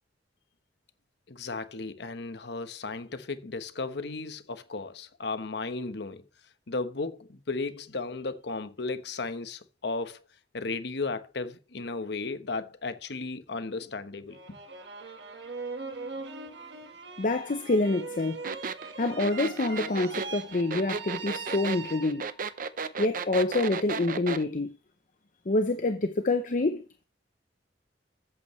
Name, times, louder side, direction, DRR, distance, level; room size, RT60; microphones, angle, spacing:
voice 1, 1.3-6.2 6.7-10.2 10.5-14.6, left 3 dB, 65° left, 1.1 m, -35 dB
sound 1, 14.3-22.5, right 4 dB, 70° right, 1.6 m, -41 dB
voice 2, 17.2-18.4 19.0-22.3 23.0-24.8 25.5-27.0, left 2 dB, 45° left, 0.7 m, -27 dB
sound 2, 18.4-24.4, right 5 dB, 50° right, 0.7 m, -34 dB
13.5 x 8.3 x 3.2 m
head